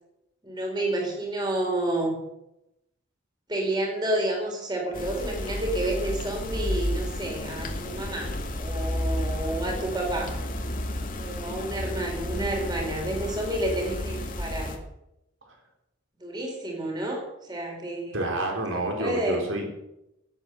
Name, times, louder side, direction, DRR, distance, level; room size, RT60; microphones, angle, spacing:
voice 1, 0.4-2.1 3.5-10.3 11.2-14.8 16.2-18.3 19.0-19.4, right 1 dB, 20° right, 0 dB, 4.7 m, -30 dB
sound 1, 4.9-14.8, left 1 dB, 45° left, 2.1 m, -32 dB
voice 2, 18.1-19.7, right 1 dB, 90° right, 1 dB, 4.1 m, -29 dB
18.5 x 8.7 x 7.9 m, 0.87 s
head